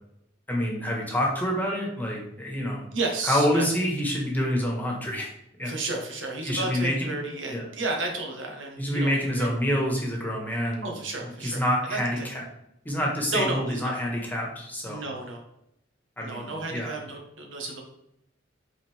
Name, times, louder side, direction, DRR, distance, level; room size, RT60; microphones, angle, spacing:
voice 1, 0.5-2.8 3.2-5.3 5.6-5.7 6.4-7.1 7.5-7.6 8.8-10.9 11.4-12.4 12.8-15.0 16.2-17.0, equal, 10° left, -1 dB, 1.6 m, -27 dB
voice 2, 2.9-3.7 5.6-9.5 10.8-11.6 11.9-12.3 13.3-14.0 14.9-15.4 16.2-17.8, right 3 dB, 80° right, 1 dB, 1.7 m, -32 dB
8.6 x 4.2 x 3.6 m, 0.80 s
head